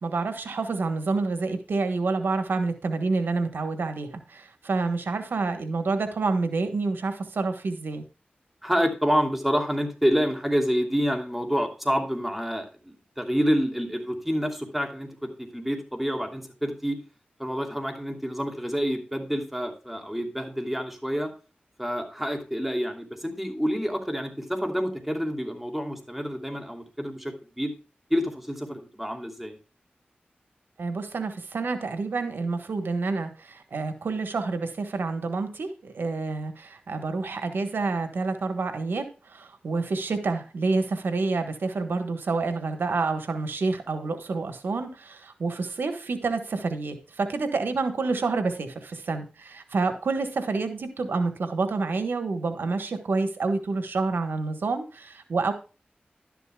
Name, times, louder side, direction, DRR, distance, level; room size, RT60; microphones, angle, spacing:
voice 1, 0.0-8.0 30.8-55.5, right 3 dB, 90° right, 8 dB, 1.4 m, -28 dB
voice 2, 8.6-17.0 17.4-21.3 21.8-27.7 28.1-29.6, equal, 5° right, 3 dB, 2.8 m, -28 dB
12.0 x 11.0 x 2.3 m, 0.33 s
wide cardioid pair, 65°, 3 cm